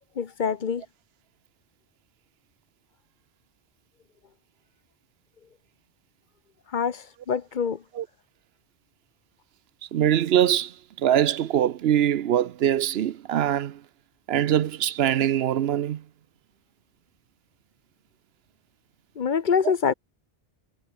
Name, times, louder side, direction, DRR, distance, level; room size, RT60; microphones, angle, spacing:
voice 1, 0.2-0.8 6.7-7.8 19.2-19.9, left 6 dB, 55° left, 0.9 m, -25 dB
voice 2, 9.9-13.8 14.3-16.0 19.6-19.7, right 10 dB, 80° right, 0.9 m, -23 dB
omnidirectional pair, 1.0 m